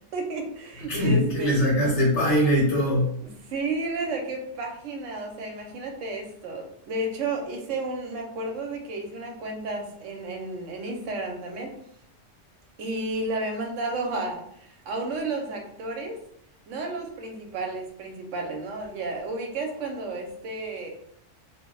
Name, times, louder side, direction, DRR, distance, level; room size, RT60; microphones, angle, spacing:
voice 1, 0.1-1.6 3.2-11.7 12.8-16.2 16.7-20.9, right 2 dB, 85° right, 2 dB, 1.0 m, -32 dB
voice 2, 0.9-3.1, equal, 70° left, -3 dB, 0.9 m, -22 dB
2.3 x 2.0 x 3.7 m, 0.70 s
omnidirectional pair, 1.3 m